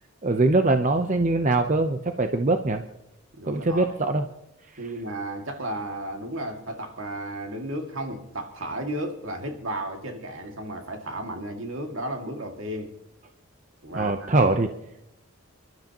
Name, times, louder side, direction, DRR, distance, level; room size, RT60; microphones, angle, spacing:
voice 1, 0.2-2.8 3.5-4.2 13.9-14.7, right 2 dB, 35° right, 0.7 m, -22 dB
voice 2, 3.3-4.0 4.8-12.9 13.8-14.5, right 1 dB, 65° right, 2.1 m, -34 dB
28.5 x 12.0 x 2.9 m
head